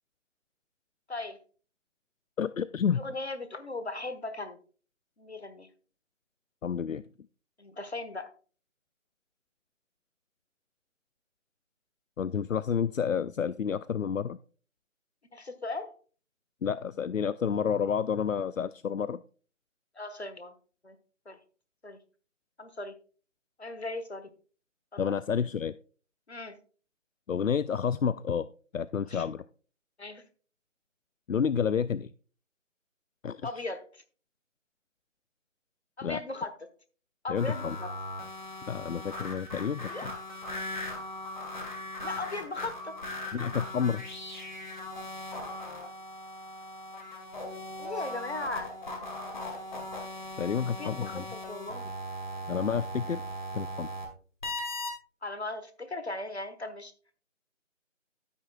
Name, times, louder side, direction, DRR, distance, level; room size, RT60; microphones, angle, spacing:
voice 1, 2.4-3.0 6.6-7.0 12.2-14.4 16.6-19.2 25.0-25.7 27.3-28.5 28.7-29.4 31.3-32.1 33.2-33.4 36.0-36.2 37.3-37.8 38.7-40.1 43.3-44.1 50.4-51.3 52.5-53.2 53.5-53.9, left 7 dB, 80° left, 16 dB, 0.5 m, -29 dB
voice 2, 2.9-4.6 5.2-5.7 7.6-8.3 15.3-15.9 19.9-20.5 20.8-21.0 21.2-21.4 21.8-22.0 22.6-23.0 23.6-24.3 24.9-25.0 26.3-26.6 29.1-29.3 30.0-30.2 33.4-34.0 36.0-36.7 37.2-37.9 39.9-40.1 42.0-42.9 47.8-48.8 50.8-52.0 55.2-56.9, left 2 dB, 55° left, 10 dB, 1.4 m, -38 dB
sound 1, 37.3-54.1 54.4-54.9, left 1 dB, 35° left, 2.1 m, -39 dB
12.5 x 9.3 x 2.3 m, 0.40 s
figure-of-eight pair, 165°, 39 cm